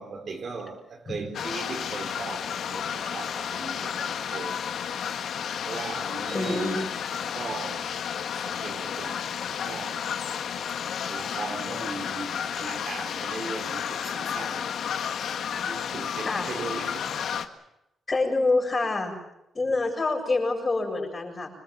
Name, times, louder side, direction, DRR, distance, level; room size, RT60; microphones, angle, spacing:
voice 1, 0.0-4.7 5.6-6.9 7.2-10.1 11.1-14.7 15.6-17.1 19.6-19.7, right 4 dB, 50° right, 4.0 m, -38 dB
sound 1, 1.3-17.5, left 8 dB, 70° left, 1.8 m, -32 dB
sound 2, 6.2-7.6, right 5 dB, 85° right, 6.0 m, -47 dB
voice 2, 6.3-6.8 16.3-16.5 18.1-19.1 19.5-21.5, left 3 dB, 25° left, 7.3 m, -26 dB
27.0 x 21.0 x 7.5 m
cardioid pair, 130°, 0 cm